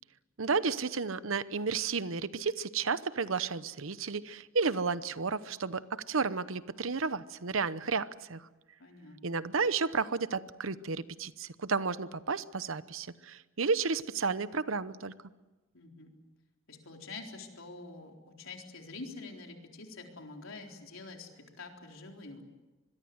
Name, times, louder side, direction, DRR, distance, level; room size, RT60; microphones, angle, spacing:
voice 1, 0.4-8.5 9.2-15.1, right 4 dB, 80° right, 15 dB, 0.9 m, -32 dB
voice 2, 8.8-9.4 15.7-16.1 16.7-22.5, left 3 dB, 80° left, 2 dB, 4.0 m, -46 dB
25.0 x 22.0 x 8.0 m, 1.2 s
head